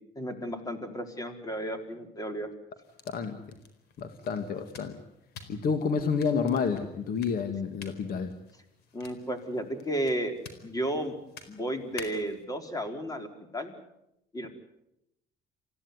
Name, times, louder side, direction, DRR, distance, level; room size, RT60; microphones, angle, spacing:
voice 1, 0.2-2.5 8.9-10.3 10.6-11.1 11.5-13.8 14.3-14.5, right 1 dB, 20° left, 6 dB, 4.3 m, -33 dB
sound 1, 2.8-12.4, left 5 dB, 75° left, 4.4 m, -51 dB
voice 2, 3.1-3.6 4.0-5.0 5.5-8.3, left 5 dB, 60° left, 8 dB, 2.2 m, -29 dB
27.5 x 16.0 x 9.7 m, 0.85 s
cardioid pair, 110°, 17 cm